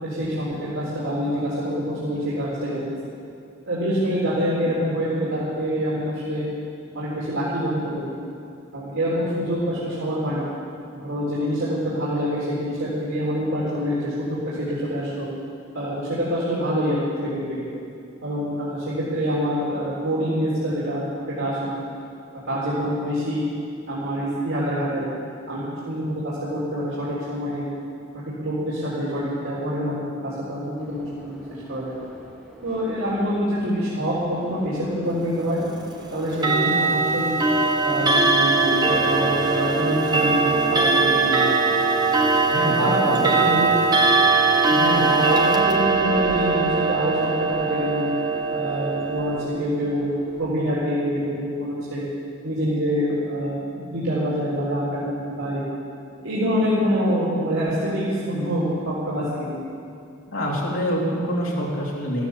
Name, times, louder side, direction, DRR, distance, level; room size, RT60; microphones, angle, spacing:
voice 1, 0.0-2.8 3.6-6.5 6.9-8.1 8.7-10.4 10.9-15.3 15.7-17.6 18.2-21.8 22.5-23.5 23.9-25.0 25.5-27.7 28.3-31.4 31.7-31.9 32.6-35.6 36.1-37.3 37.8-41.5 42.8-43.7 44.7-48.1 48.5-50.1 50.4-52.0 52.4-55.6 56.2-59.5, equal, 90° right, -9 dB, 4.0 m, -26 dB
sound 1, 30.8-50.5, equal, ahead, 3.8 m, -43 dB
Clock, 36.3-49.4, right 3 dB, 20° right, 1.0 m, -21 dB
voice 2, 42.5-43.6 60.3-62.3, equal, 75° left, -4 dB, 3.8 m, -26 dB
14.5 x 13.5 x 7.3 m, 2.5 s
head